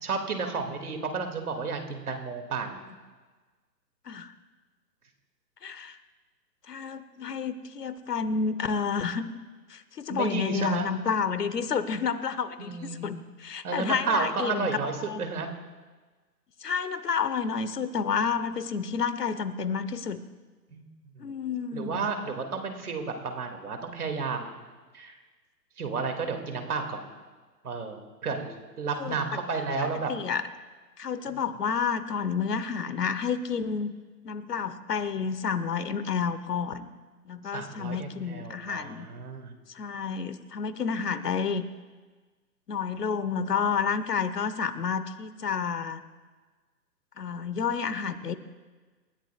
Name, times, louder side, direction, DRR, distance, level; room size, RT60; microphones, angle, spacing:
voice 1, 0.0-2.8 10.1-10.9 12.6-13.1 13.6-15.6 20.7-20.9 21.2-21.3 21.7-24.6 24.9-25.2 25.8-27.0 27.6-30.1 37.5-39.5, right 4 dB, 60° right, 5 dB, 2.5 m, -32 dB
voice 2, 5.6-6.0 6.7-9.3 9.7-14.8 15.1-15.2 16.6-20.2 21.2-22.1 29.0-29.2 30.1-30.4 31.0-33.9 34.2-36.9 37.3-39.1 39.7-41.7 42.7-46.0 47.2-48.4, left 6 dB, 70° left, 13 dB, 1.2 m, -30 dB
28.0 x 14.0 x 2.4 m, 1.3 s
figure-of-eight pair, 135°, 49 cm